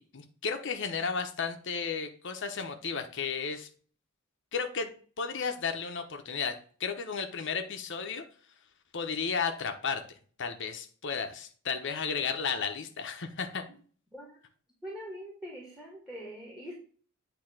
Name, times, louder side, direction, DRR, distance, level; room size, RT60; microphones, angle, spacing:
voice 1, 0.0-3.7 4.5-8.2 8.9-10.0 10.4-13.6, left 5 dB, 60° left, 6 dB, 0.9 m, -33 dB
voice 2, 14.8-16.8, equal, 5° right, -1 dB, 1.5 m, -43 dB
8.7 x 3.0 x 6.0 m, 0.44 s
head